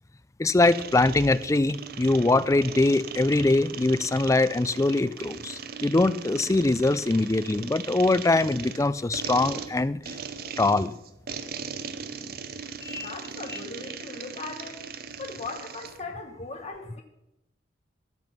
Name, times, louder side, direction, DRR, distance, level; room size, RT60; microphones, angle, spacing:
voice 1, 0.4-10.2 10.6-10.9 12.8-13.1 13.5-13.6, left 2 dB, 15° left, 15 dB, 0.4 m, -23 dB
sound 1, 0.6-16.0, right 6 dB, 55° right, 0.7 m, -39 dB
voice 2, 13.0-14.8 15.2-17.0, left 3 dB, 35° left, 4 dB, 1.0 m, -38 dB
13.5 x 7.8 x 5.5 m, 0.85 s
head